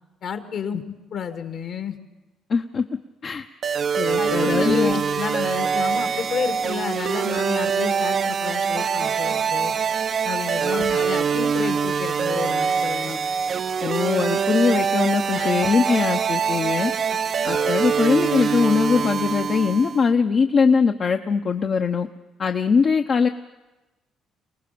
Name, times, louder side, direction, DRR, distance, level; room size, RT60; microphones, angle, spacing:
voice 1, 0.2-2.0 4.2-9.7 10.2-13.2 15.3-15.6 17.1-17.2, left 7 dB, 65° left, 8 dB, 2.2 m, -30 dB
voice 2, 2.5-2.8 3.2-3.5 4.0-5.0 10.7-10.8 13.8-16.9 17.4-22.1 22.4-23.3, left 5 dB, 50° left, 5 dB, 1.0 m, -21 dB
sound 1, 3.6-20.0, right 6 dB, 50° right, 0.6 m, -24 dB
25.0 x 19.0 x 6.9 m, 1.1 s
supercardioid pair, 65°, 0 cm